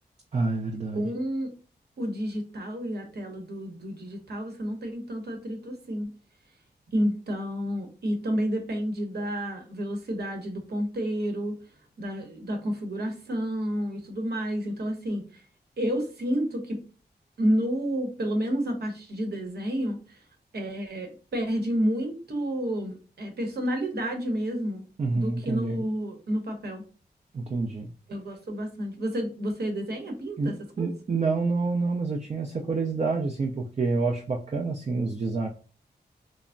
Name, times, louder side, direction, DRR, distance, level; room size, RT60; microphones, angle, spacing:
voice 1, 0.3-1.1 25.0-25.8 27.3-27.9 30.4-35.5, right 3 dB, 40° right, 1 dB, 0.4 m, -28 dB
voice 2, 0.9-1.5 2.0-6.1 6.9-11.6 12.0-15.4 15.8-16.8 17.4-20.2 20.5-24.9 25.1-26.9 28.1-30.9, equal, 70° right, 3 dB, 0.9 m, -30 dB
3.2 x 2.0 x 2.5 m, 0.36 s
cardioid pair, 70°, 17 cm